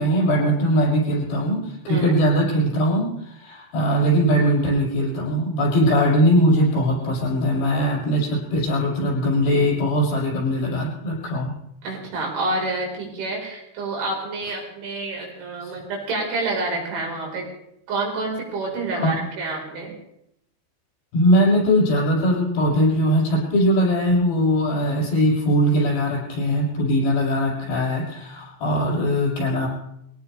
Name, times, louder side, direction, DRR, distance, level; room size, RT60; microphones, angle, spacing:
voice 1, 0.0-11.5 15.6-15.7 18.9-19.2 21.1-29.7, equal, 65° left, -4 dB, 8.8 m, -20 dB
voice 2, 11.8-17.4 17.9-19.9, right 2 dB, 85° right, -1 dB, 7.0 m, -28 dB
23.0 x 17.5 x 3.4 m, 0.77 s
omnidirectional pair, 5.2 m